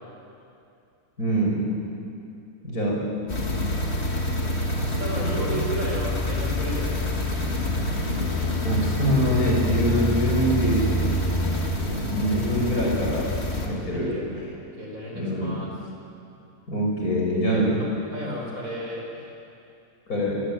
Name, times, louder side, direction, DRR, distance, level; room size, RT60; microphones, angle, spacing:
voice 1, 1.2-1.7 2.6-3.1 8.6-10.9 12.1-13.3 13.6-14.4 15.1-15.6 16.7-17.8 20.1-20.4, equal, 80° left, -2 dB, 6.2 m, -24 dB
sound 1, 3.3-13.7, left 1 dB, 45° left, 2.9 m, -26 dB
voice 2, 4.7-7.1 13.9-14.3 14.7-15.7 17.5-17.7 18.1-19.3, equal, 65° right, -1 dB, 5.5 m, -33 dB
24.5 x 21.0 x 9.1 m, 2.6 s
omnidirectional pair, 1.5 m